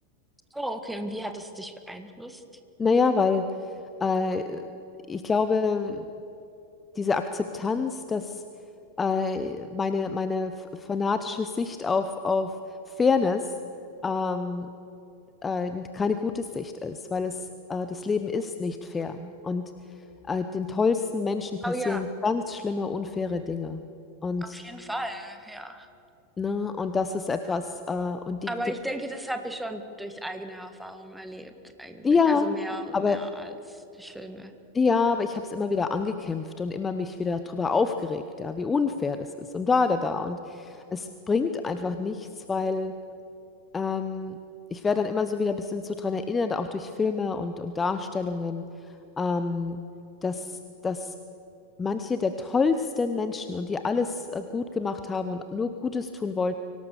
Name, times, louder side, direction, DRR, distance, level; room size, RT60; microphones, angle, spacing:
voice 1, 0.5-2.4 21.6-22.0 24.4-25.9 28.5-31.5 31.8-34.5, right 1 dB, 5° right, 8 dB, 1.7 m, -35 dB
voice 2, 2.8-4.6 5.1-6.1 6.9-8.4 9.0-12.5 12.9-13.5 14.0-14.7 15.4-19.6 20.3-23.8 24.2-24.6 26.4-28.5 32.0-32.6 32.9-33.2 34.7-42.9 43.7-44.4 44.7-48.6 49.2-49.8 50.2-51.1 51.8-56.5, left 4 dB, 15° left, 9 dB, 0.9 m, -27 dB
24.5 x 18.0 x 6.8 m, 2.9 s
figure-of-eight pair, 90°, 0 cm